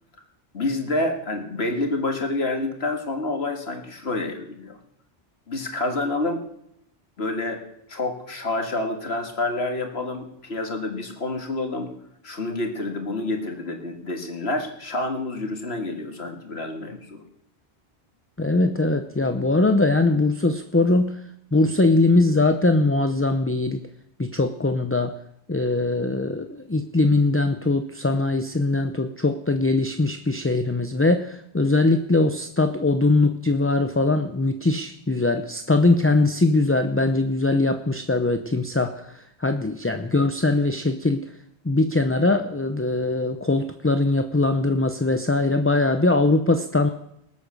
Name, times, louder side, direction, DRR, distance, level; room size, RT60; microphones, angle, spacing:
voice 1, 0.5-4.8 5.5-6.4 7.2-7.6 7.9-11.9 12.2-17.2, left 2 dB, 65° left, 4 dB, 2.2 m, -28 dB
voice 2, 18.4-21.2 21.5-23.8 24.2-25.2 25.5-39.0 39.4-41.2 41.6-46.9, left 2 dB, 15° left, 7 dB, 0.5 m, -21 dB
19.5 x 8.6 x 6.4 m, 0.75 s
omnidirectional pair, 1.1 m